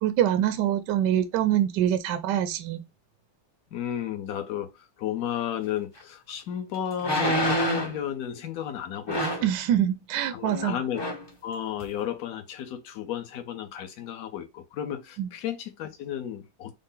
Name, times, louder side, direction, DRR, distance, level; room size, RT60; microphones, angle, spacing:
voice 1, 0.0-2.8 9.4-10.8 15.2-15.3, right 11 dB, 75° right, 1.0 m, -25 dB
voice 2, 3.7-4.7 5.0-9.5 10.3-11.0 11.4-16.7, left 10 dB, 60° left, 1.0 m, -33 dB
sound 1, 6.0-6.1 7.0-8.0 9.1-9.5 10.5-10.7 10.9-11.3 11.8-11.9, equal, 25° left, 0.5 m, -27 dB
5.4 x 2.1 x 3.7 m
omnidirectional pair, 2.2 m